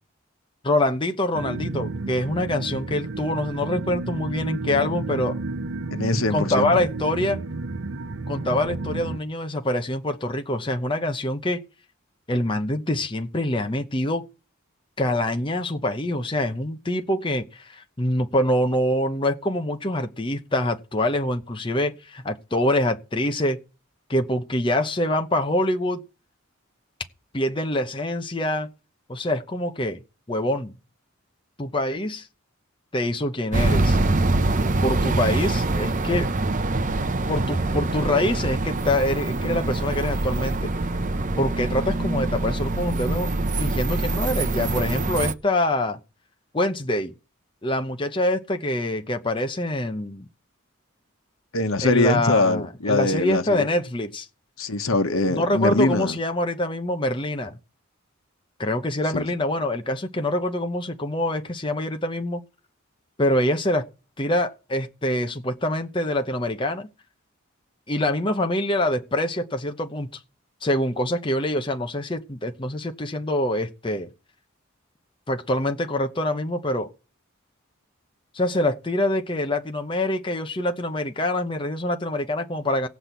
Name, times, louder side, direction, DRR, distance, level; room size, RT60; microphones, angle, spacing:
voice 1, 0.6-5.4 6.3-7.4 8.3-11.6 12.3-14.3 15.0-23.6 24.1-26.0 27.3-28.7 29.1-30.0 30.3-30.7 31.6-32.3 32.9-34.0 34.8-36.3 37.3-40.7 41.4-43.3 43.6-46.0 46.5-47.1 47.6-50.3 51.8-54.3 55.3-57.5 58.6-62.4 63.2-63.9 64.2-66.9 67.9-70.2 70.6-74.1 75.3-76.9 78.3-82.9, left 1 dB, 25° left, 0.9 m, -25 dB
sound 1, 1.3-9.2, right 3 dB, 70° right, 0.8 m, -31 dB
voice 2, 5.9-6.7 51.5-53.7 54.6-56.2 59.1-59.3, left 2 dB, 90° left, 1.2 m, -23 dB
sound 2, 33.5-45.3, right 2 dB, 40° right, 0.7 m, -24 dB
17.5 x 5.9 x 8.2 m
head